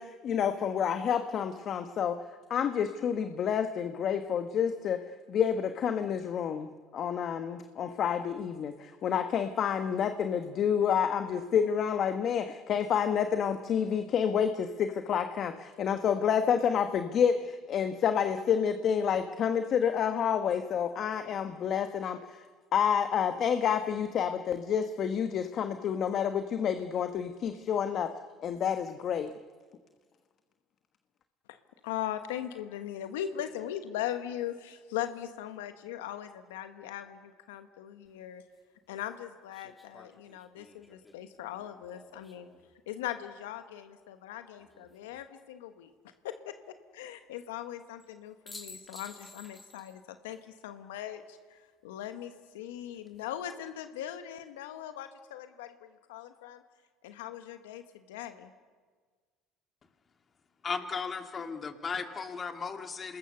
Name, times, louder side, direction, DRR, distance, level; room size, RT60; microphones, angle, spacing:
voice 1, 0.0-2.2 2.5-5.0 5.3-22.4 22.7-28.1 28.4-29.3, left 8 dB, 50° left, 8 dB, 1.1 m, -29 dB
voice 2, 31.8-38.4 38.9-42.5 42.9-45.9 46.2-56.6 57.0-58.5, left 11 dB, 90° left, 9 dB, 1.1 m, -40 dB
sound 1, 38.0-38.1 39.5-42.7 44.6-45.2 48.0-48.1 48.5-50.0 50.3-50.4 52.7-53.2, left 2 dB, 15° left, 2.7 m, -53 dB
voice 3, 60.6-63.2, left 5 dB, 35° left, 6 dB, 2.4 m, -36 dB
27.0 x 20.5 x 6.8 m, 1.5 s
supercardioid pair, 80°, 0 cm